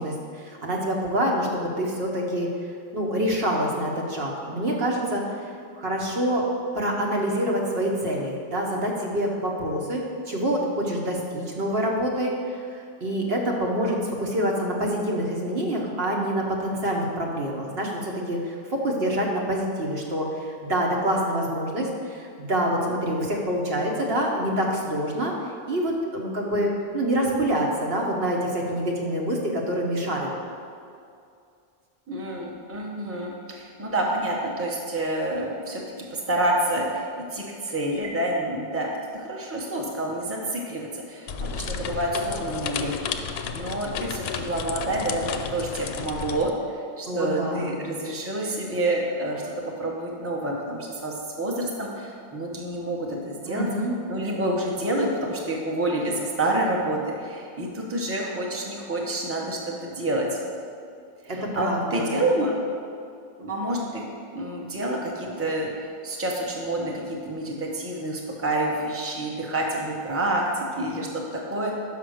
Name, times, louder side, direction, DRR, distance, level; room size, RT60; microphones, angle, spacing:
voice 1, 0.0-2.5 2.9-5.2 5.7-6.4 6.7-12.3 12.7-25.3 25.7-30.3 47.1-47.8 53.4-54.0 61.3-62.2, equal, 70° right, -1 dB, 1.3 m, -26 dB
voice 2, 32.1-35.8 36.1-38.9 39.1-42.9 43.5-46.5 47.0-49.5 49.8-53.7 54.1-60.3 61.2-62.5 63.4-64.1 64.3-71.7, right 1 dB, 15° right, -2 dB, 0.9 m, -28 dB
sound 1, 41.3-46.5, left 6 dB, 80° left, 0.8 m, -32 dB
5.7 x 5.6 x 6.4 m, 2.4 s
omnidirectional pair, 1.0 m